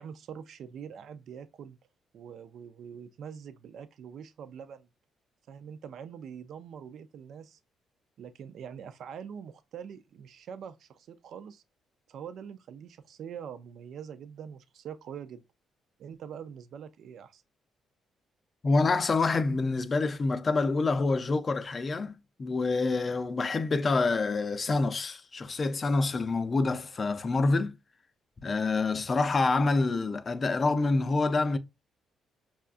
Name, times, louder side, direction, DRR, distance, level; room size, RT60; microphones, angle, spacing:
voice 1, 0.0-1.8 2.1-4.9 5.5-7.6 8.2-11.6 12.1-15.4 16.0-17.4, right 7 dB, 70° right, 0.4 m, -44 dB
voice 2, 18.6-27.7 28.4-31.6, left 3 dB, 35° left, 0.5 m, -27 dB
5.5 x 2.3 x 2.4 m
cardioid pair, 90°, 0 cm